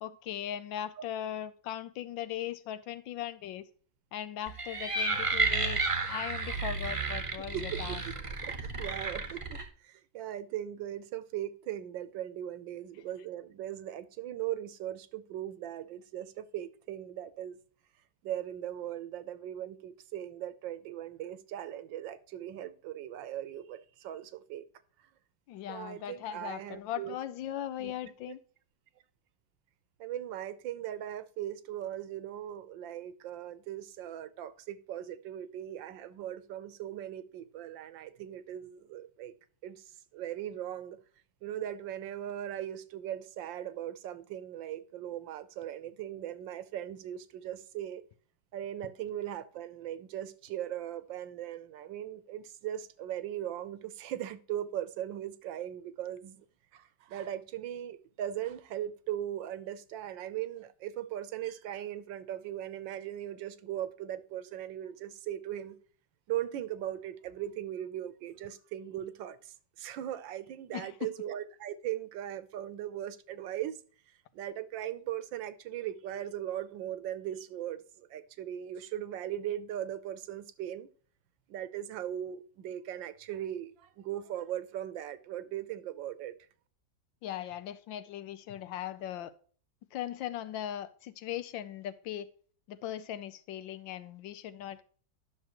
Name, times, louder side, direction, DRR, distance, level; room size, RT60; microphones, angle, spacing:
voice 1, 0.0-3.6 4.1-8.0 25.5-28.4 70.7-71.1 87.2-89.3 89.9-92.3 92.7-94.8, left 11 dB, 80° left, 1.4 m, -39 dB
sound 1, 4.5-9.6, right 3 dB, 25° right, 0.7 m, -32 dB
voice 2, 7.5-8.1 8.4-17.6 18.2-24.7 25.7-27.2 27.8-27.9 30.0-39.3 39.6-39.8 40.1-41.0 41.4-48.0 48.5-56.4 56.7-65.8 66.3-73.8 74.3-80.9 81.5-86.3, right 11 dB, 75° right, 1.4 m, -39 dB
11.0 x 6.4 x 3.0 m
omnidirectional pair, 2.1 m